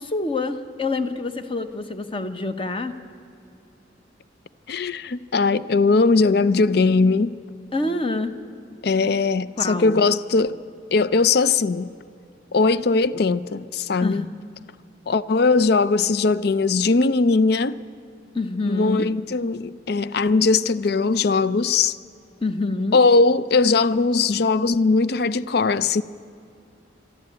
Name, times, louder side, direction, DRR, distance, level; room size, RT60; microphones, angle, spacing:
voice 1, 0.0-3.0 7.7-8.3 9.6-10.0 14.0-14.3 18.3-19.1 22.4-23.0, left 2 dB, 25° left, 0.9 m, -26 dB
voice 2, 4.7-7.4 8.8-10.6 10.9-11.9 12.5-14.2 15.1-17.8 18.7-22.0 22.9-26.0, left 4 dB, 55° left, 0.5 m, -20 dB
26.5 x 11.5 x 8.7 m
head